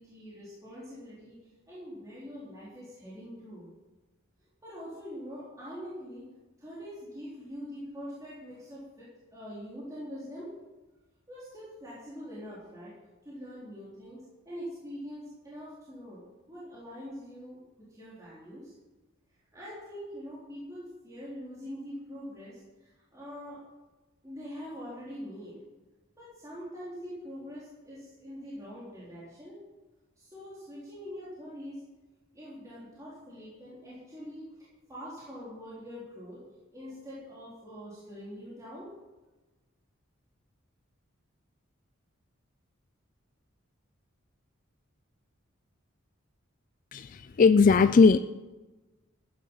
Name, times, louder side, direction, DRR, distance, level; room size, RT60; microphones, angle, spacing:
voice 1, 0.0-1.4 1.7-3.7 4.6-6.2 6.6-10.5 11.3-12.9 13.2-16.2 16.5-17.6 17.9-18.7 19.5-23.6 24.2-25.6 26.1-29.6 30.2-31.8 32.3-34.5 34.9-36.4 36.7-38.9, equal, 15° right, -9 dB, 3.9 m, -43 dB
voice 2, 46.9-48.2, left 4 dB, 40° left, 11 dB, 0.3 m, -19 dB
15.0 x 9.7 x 5.5 m, 1.1 s
head